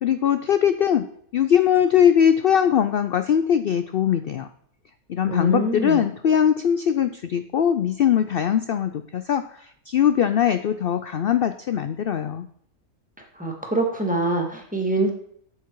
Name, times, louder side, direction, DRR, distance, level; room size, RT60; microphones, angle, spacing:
voice 1, 0.0-1.1 1.3-4.5 5.1-9.4 9.9-12.5, left 9 dB, 70° left, 10 dB, 0.5 m, -21 dB
voice 2, 5.3-6.0 13.4-15.1, right 1 dB, 5° right, 1 dB, 1.9 m, -24 dB
8.5 x 8.3 x 4.6 m, 0.63 s
omnidirectional pair, 1.5 m